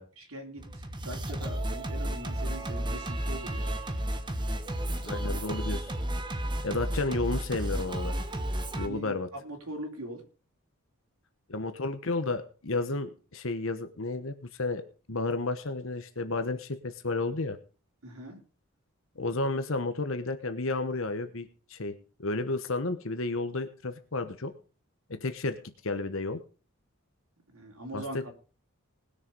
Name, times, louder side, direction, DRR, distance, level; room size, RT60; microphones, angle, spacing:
voice 1, 0.0-3.7 8.8-10.2 18.0-18.4 27.5-28.3, right 1 dB, 75° right, 1 dB, 3.5 m, -42 dB
Singing, 0.6-8.9, right 1 dB, 20° right, 1.1 m, -32 dB
voice 2, 5.0-5.9 6.6-8.1 8.8-9.3 11.5-14.8 15.1-17.6 19.2-21.9 22.2-24.5 25.1-25.6 25.8-26.4 27.9-28.3, left 3 dB, 60° left, 9 dB, 1.1 m, -32 dB
19.5 x 6.8 x 5.3 m, 0.38 s
head